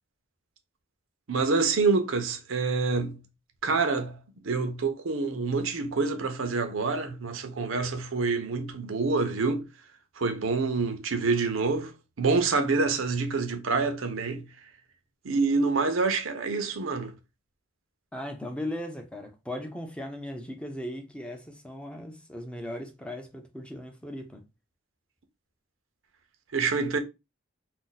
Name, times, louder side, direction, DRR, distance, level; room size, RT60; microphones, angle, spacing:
voice 1, 1.3-3.2 3.6-9.7 10.2-11.9 12.2-14.5 15.2-17.1 26.5-27.0, right 4 dB, 85° right, 0.6 m, -27 dB
voice 2, 18.1-24.4, left 1 dB, 5° left, 0.5 m, -38 dB
2.5 x 2.2 x 3.8 m
head